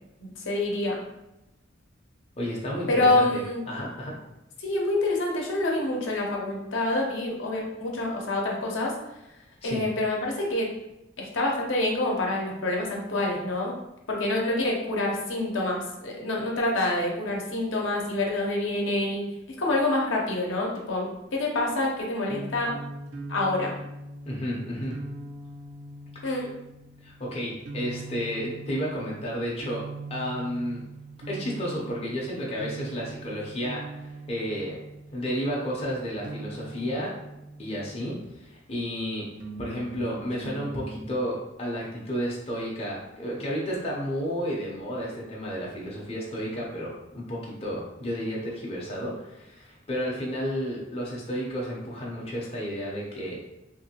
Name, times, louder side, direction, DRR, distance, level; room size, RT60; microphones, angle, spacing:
voice 1, 0.2-1.0 2.9-3.6 4.6-8.9 9.6-10.7 11.2-13.7 14.1-19.3 19.6-22.7 23.3-23.7 26.2-26.5, left 2 dB, 75° left, -2 dB, 0.7 m, -27 dB
voice 2, 2.4-4.2 9.6-9.8 24.3-25.0 26.2-26.5 27.0-29.8 30.1-30.8 31.3-34.8 35.1-37.2 37.6-39.3 39.6-53.4, equal, 30° left, -4 dB, 0.5 m, -32 dB
sound 1, 22.3-38.5 39.3-41.3, right 2 dB, 80° right, 0.6 m, -42 dB
3.0 x 2.6 x 2.8 m, 0.92 s
head